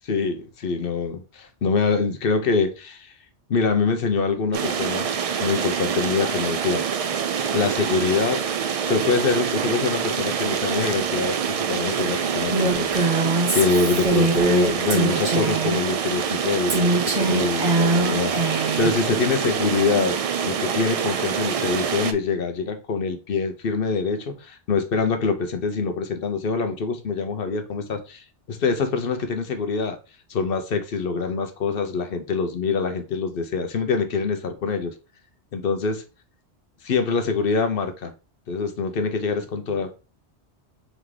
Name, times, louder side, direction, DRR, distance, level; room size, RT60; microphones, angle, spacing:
voice 1, 0.1-3.1 3.5-5.1 5.4-6.8 7.5-13.2 13.5-30.0 30.3-34.9 35.5-36.0 36.8-38.1 38.5-39.9, left 4 dB, 60° left, 0.9 m, -25 dB
sound 1, 4.5-22.1, right 7 dB, 70° right, 0.3 m, -26 dB
Female speech woman speaking, 12.5-15.8 16.7-18.9, right 2 dB, 45° right, 1.2 m, -23 dB
3.9 x 3.5 x 3.2 m
omnidirectional pair, 1.1 m